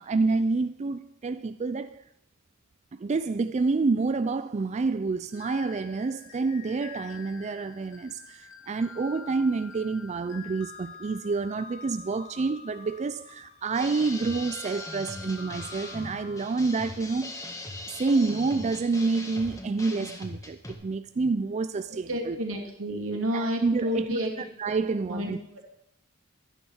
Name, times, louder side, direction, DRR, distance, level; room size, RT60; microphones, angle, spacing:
voice 1, 0.0-2.0 2.9-17.4 17.9-22.4 23.3-24.1 24.6-25.4, right 4 dB, 35° right, 0.4 m, -28 dB
sound 1, 5.3-17.7, left 6 dB, 65° left, 2.8 m, -47 dB
sound 2, 13.7-20.7, left 2 dB, 15° left, 1.8 m, -40 dB
voice 2, 21.9-24.3 24.9-25.3, equal, 80° right, 2.8 m, -30 dB
12.5 x 9.8 x 6.4 m
head